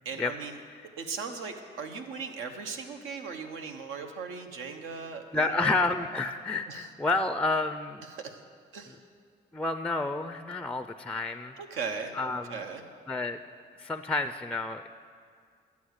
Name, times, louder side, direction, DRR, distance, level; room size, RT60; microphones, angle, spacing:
voice 1, 0.0-0.6 1.0-5.8 6.7-6.9 8.0-8.4 8.7-9.0 11.6-12.8, right 5 dB, 90° right, 5 dB, 1.0 m, -38 dB
voice 2, 5.3-8.0 9.5-11.5 12.2-12.6 13.1-13.4 13.8-14.9, left 3 dB, 5° left, 9 dB, 0.3 m, -29 dB
11.5 x 8.4 x 6.4 m, 2.1 s
cardioid pair, 90°, 20 cm